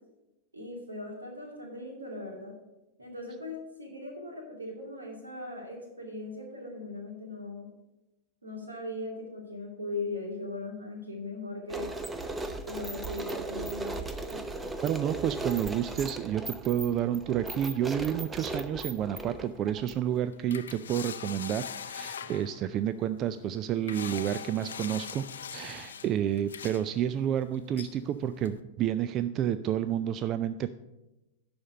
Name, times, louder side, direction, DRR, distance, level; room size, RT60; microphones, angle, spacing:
voice 1, 0.5-2.5 3.0-7.7 8.4-11.9 12.6-14.0 14.3-14.4, left 2 dB, 80° right, 0 dB, 2.4 m, -39 dB
sound 1, 11.7-20.2, right 2 dB, 10° right, 0.8 m, -37 dB
voice 2, 14.8-25.2 25.5-30.7, right 10 dB, 35° right, 13 dB, 0.3 m, -30 dB
sound 2, 18.1-28.6, left 8 dB, 65° left, 0.5 m, -44 dB
11.0 x 4.3 x 6.6 m, 0.99 s
figure-of-eight pair, 90°, 0 cm